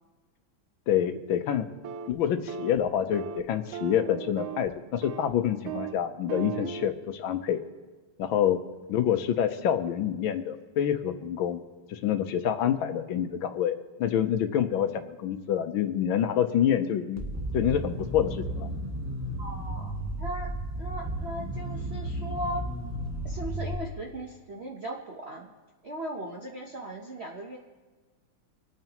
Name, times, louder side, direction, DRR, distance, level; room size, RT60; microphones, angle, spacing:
voice 1, 0.9-1.7 2.1-7.6 8.2-8.6 8.9-11.6 11.9-17.2 17.5-18.7, left 9 dB, 75° left, 9 dB, 1.4 m, -27 dB
sound 1, 1.8-2.2 2.5-2.8 3.1-3.4 3.7-4.7 5.0-5.3 5.7-6.0 6.3-6.9, right 8 dB, 85° right, 1.5 m, -37 dB
sound 2, 17.2-23.7, right 1 dB, 10° right, 0.8 m, -34 dB
voice 2, 19.4-20.5 20.8-22.6 23.2-25.5 25.8-27.6, right 1 dB, 50° right, -1 dB, 0.7 m, -38 dB
26.5 x 9.0 x 3.0 m, 1.3 s
omnidirectional pair, 2.4 m